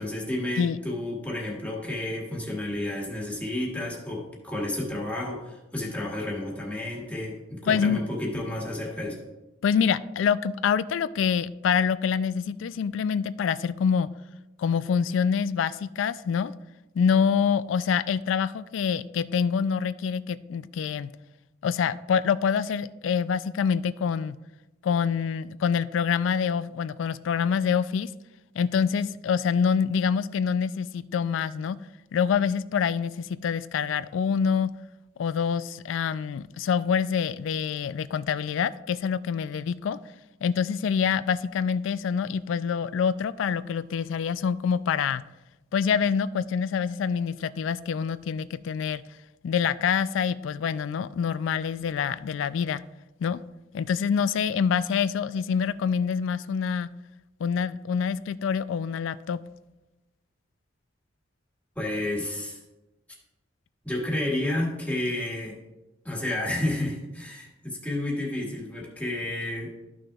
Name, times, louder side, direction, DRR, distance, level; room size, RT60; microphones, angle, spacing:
voice 1, 0.0-9.2 61.7-62.6 63.8-65.6 66.0-69.7, left 1 dB, 10° left, -3 dB, 1.7 m, -31 dB
voice 2, 7.7-8.0 9.6-14.1 14.6-16.5 17.0-21.1 21.6-24.4 24.8-28.1 28.6-31.8 32.1-34.7 35.2-40.0 40.4-45.2 45.7-49.0 49.4-52.8 53.2-53.4 53.7-56.9 57.4-59.4, left 6 dB, 75° left, 16 dB, 0.3 m, -26 dB
13.0 x 6.2 x 2.3 m, 1.0 s
head